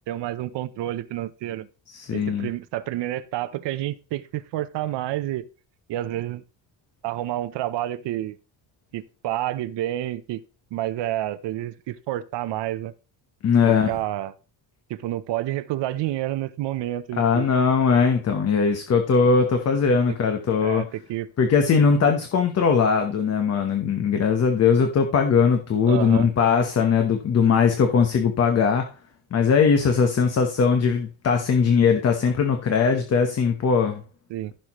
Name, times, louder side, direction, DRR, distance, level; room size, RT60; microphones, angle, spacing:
voice 1, 0.1-1.7 2.1-5.5 5.9-6.4 7.0-8.4 8.9-10.4 10.7-12.9 13.7-14.3 14.9-17.5 20.6-21.3 25.9-26.3 34.3-34.5, right 14 dB, 65° right, 0.8 m, -29 dB
voice 2, 1.9-2.5 13.4-13.9 17.2-20.8 21.4-28.9 29.3-34.0, left 6 dB, 35° left, 1.1 m, -20 dB
15.0 x 6.6 x 3.0 m
cardioid pair, 170°, 46 cm